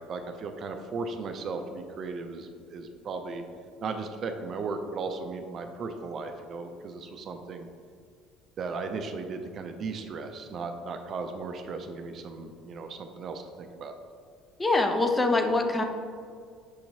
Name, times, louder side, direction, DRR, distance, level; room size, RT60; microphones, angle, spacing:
voice 1, 0.0-3.4 3.8-7.7 8.6-13.9, right 4 dB, 50° right, 6 dB, 0.4 m, -36 dB
voice 2, 14.6-15.8, left 2 dB, 20° left, 4 dB, 0.5 m, -24 dB
6.3 x 2.9 x 2.7 m, 2.2 s
supercardioid pair, 90°, 0 cm